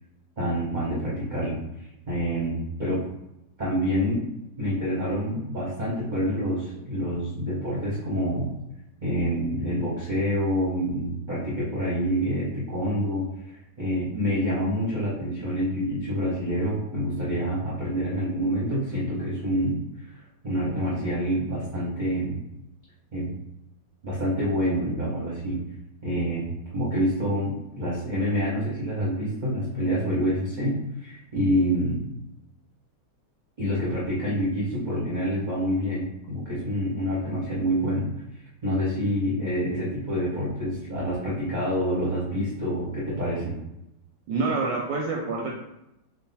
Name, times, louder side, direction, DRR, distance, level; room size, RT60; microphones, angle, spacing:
voice 1, 0.4-1.6 2.1-3.0 3.6-4.2 4.6-8.5 9.0-13.2 13.8-19.8 20.1-22.4 23.1-23.3 24.0-25.6 26.0-32.0 33.6-38.1 38.6-43.6, equal, 40° right, -8 dB, 0.6 m, -27 dB
voice 2, 44.3-45.5, right 3 dB, 75° right, -2 dB, 1.1 m, -27 dB
3.8 x 2.2 x 4.0 m, 0.87 s
omnidirectional pair, 2.3 m